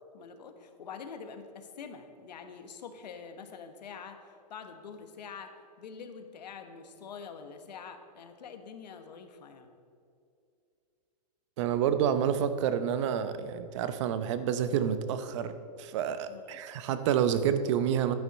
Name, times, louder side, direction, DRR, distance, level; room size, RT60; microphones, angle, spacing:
voice 1, 0.1-5.5 5.8-9.7 16.3-16.6, left 6 dB, 85° left, 7 dB, 1.3 m, -45 dB
voice 2, 11.6-18.1, right 8 dB, 45° right, 11 dB, 0.7 m, -29 dB
11.5 x 9.8 x 4.2 m, 2.5 s
hypercardioid pair, 155°, 21 cm